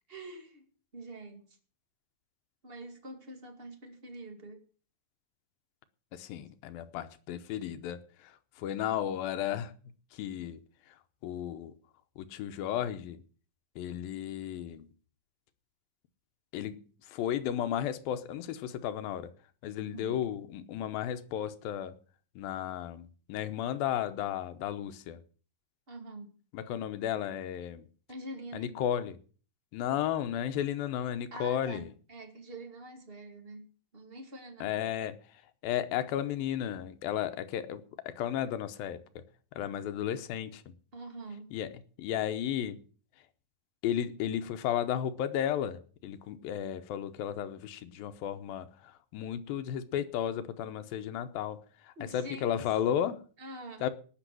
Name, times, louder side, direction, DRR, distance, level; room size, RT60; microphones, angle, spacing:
voice 1, 0.1-0.7 0.9-1.6 2.6-4.6 19.8-20.2 25.9-26.3 28.1-28.8 31.3-34.9 40.9-41.6 52.0-52.6 53.4-53.9, right 2 dB, 20° right, 2.0 m, -45 dB
voice 2, 6.1-9.7 10.1-10.6 11.2-11.7 12.2-13.2 13.8-14.9 16.5-16.8 17.1-19.3 19.6-22.0 22.4-25.2 26.5-27.9 28.5-29.2 29.7-31.9 34.6-35.2 35.6-39.2 39.5-40.7 41.5-41.7 42.0-42.8 43.8-51.6 51.8-53.2 53.8-53.9, left 10 dB, 85° left, 2.7 m, -34 dB
18.5 x 6.2 x 7.7 m
omnidirectional pair, 4.1 m